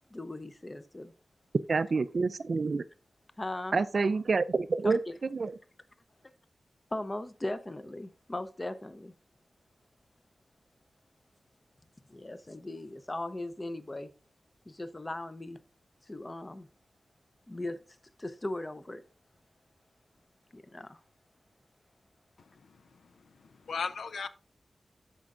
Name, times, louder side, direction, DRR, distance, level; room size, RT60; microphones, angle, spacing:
voice 1, 0.1-1.1 3.4-3.8 4.8-5.1 6.9-9.1 12.1-14.1 14.7-15.6 16.1-16.7 17.5-17.8 18.2-19.0 20.5-21.0, left 1 dB, 20° left, 0.6 m, -38 dB
voice 2, 1.7-2.8 3.7-5.0 5.3-5.6, right 4 dB, 50° right, 0.4 m, -28 dB
voice 3, 22.4-24.3, left 5 dB, 80° left, 0.5 m, -39 dB
13.0 x 5.3 x 2.5 m
wide cardioid pair, 140°, 0 cm